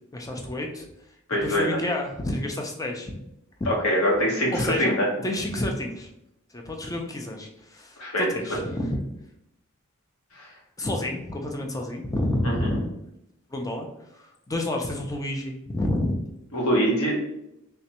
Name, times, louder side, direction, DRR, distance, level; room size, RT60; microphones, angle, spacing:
voice 1, 0.1-0.9 1.4-3.1 3.6-3.7 4.5-5.0 5.2-6.1 6.5-9.0 10.8-12.8 13.5-13.9 14.2-16.2, left 1 dB, 15° left, 2 dB, 0.5 m, -29 dB
voice 2, 1.3-1.8 3.7-5.1 8.0-8.6 10.4-10.5 12.4-12.8 16.5-17.1, equal, 70° left, -3 dB, 1.1 m, -24 dB
3.3 x 3.1 x 2.9 m, 0.84 s
head